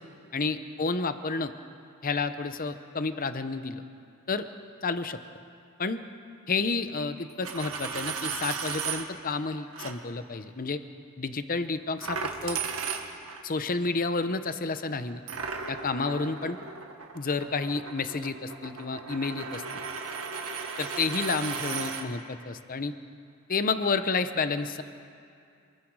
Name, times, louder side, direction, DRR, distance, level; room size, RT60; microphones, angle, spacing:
voice 1, 0.3-1.5 2.0-3.8 4.3-4.5 4.8-5.2 5.8-6.0 6.5-10.8 11.2-12.6 13.4-15.2 15.7-16.6 17.1-19.8 20.8-22.9 23.5-24.8, left 4 dB, 40° left, 10 dB, 0.8 m, -30 dB
Coin (dropping), 7.3-9.0 9.7-9.9 12.0-13.4 15.3-22.0, right 5 dB, 75° right, 1.8 m, -35 dB
27.5 x 20.5 x 4.8 m, 2.4 s
head